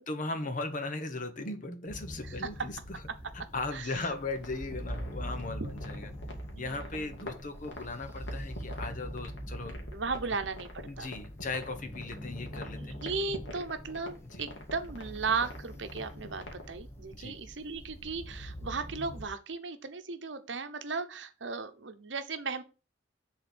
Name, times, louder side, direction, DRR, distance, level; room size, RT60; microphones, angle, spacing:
voice 1, 0.0-3.0 3.3-6.1 6.6-9.8 10.3-10.4 10.9-13.0 14.2-14.5 17.1-17.4, left 3 dB, 45° left, 1.0 m, -38 dB
sound 1, 1.9-19.2, equal, 15° left, 1.0 m, -43 dB
sound 2, 4.0-16.7, left 1 dB, 75° left, 1.8 m, -46 dB
voice 2, 5.0-5.7 6.5-7.3 9.9-11.1 12.7-22.6, right 4 dB, 75° right, 0.8 m, -36 dB
6.6 x 3.9 x 6.2 m
head